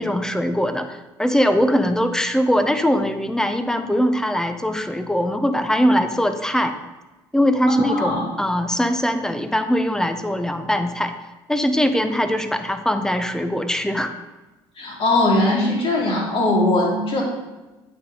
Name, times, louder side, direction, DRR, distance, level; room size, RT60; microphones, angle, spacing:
voice 1, 0.0-6.7 7.3-11.1 11.5-14.1, equal, 5° left, 9 dB, 0.7 m, -21 dB
voice 2, 7.7-8.2 14.8-17.2, left 2 dB, 50° left, -2 dB, 2.4 m, -20 dB
8.5 x 4.1 x 3.8 m, 1.1 s
supercardioid pair, 70°, 12 cm